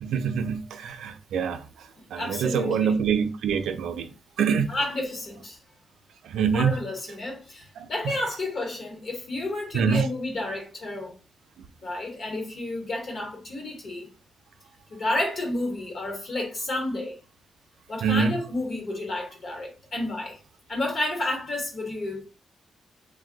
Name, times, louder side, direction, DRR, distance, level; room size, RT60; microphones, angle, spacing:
voice 1, 0.0-4.1 4.4-4.7 6.2-6.8 7.8-8.2 9.7-10.1 18.0-18.4, right 6 dB, 85° right, 0.4 m, -25 dB
voice 2, 2.2-2.9 4.7-5.6 6.5-11.1 11.8-14.1 14.9-17.2 17.9-20.4 20.7-22.2, left 2 dB, 40° left, 1.0 m, -31 dB
2.6 x 2.2 x 3.8 m
wide cardioid pair, 175°, 0 cm